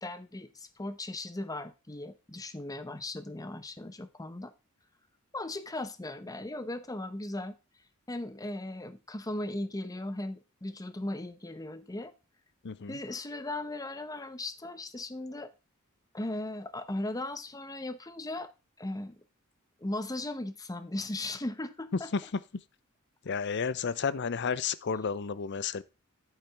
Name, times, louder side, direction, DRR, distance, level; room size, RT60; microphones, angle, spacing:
voice 1, 0.0-4.5 5.3-7.6 8.1-12.1 12.9-15.5 16.1-18.5 18.8-19.2 19.8-22.1, left 1 dB, 15° left, 0.8 m, -37 dB
voice 2, 12.6-13.0 21.9-22.4 23.2-25.8, left 5 dB, 55° left, 0.5 m, -32 dB
8.8 x 8.1 x 3.4 m
head